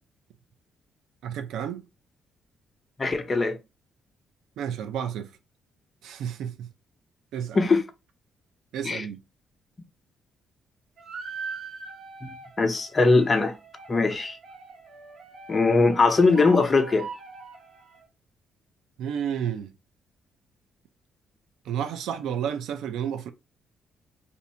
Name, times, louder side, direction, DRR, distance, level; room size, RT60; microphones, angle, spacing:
voice 1, 1.2-1.8 4.6-5.3 6.0-6.7 7.3-7.6 8.7-9.2 19.0-19.7 21.7-23.3, right 8 dB, 80° right, 0.5 m, -31 dB
voice 2, 3.0-3.6 7.5-7.8 8.8-9.0 12.6-13.5 13.9-14.4 15.5-17.1, left 3 dB, 30° left, 0.8 m, -21 dB
sound 1, 11.0-18.0, right 4 dB, 60° right, 1.1 m, -41 dB
2.7 x 2.6 x 4.3 m
cardioid pair, 90°, 0 cm